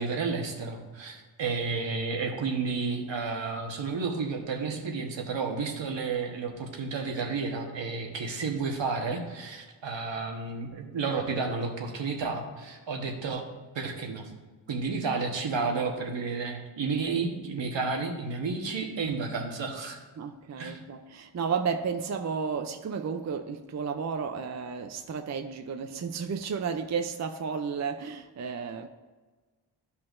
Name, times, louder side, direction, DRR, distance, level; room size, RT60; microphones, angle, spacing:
voice 1, 0.0-13.4 13.7-14.3 14.7-20.0 20.6-20.8, right 4 dB, 75° right, 1.3 m, -31 dB
voice 2, 20.2-28.9, right 6 dB, 40° right, 0.4 m, -32 dB
12.5 x 5.7 x 2.5 m
wide cardioid pair, 120°, 45 cm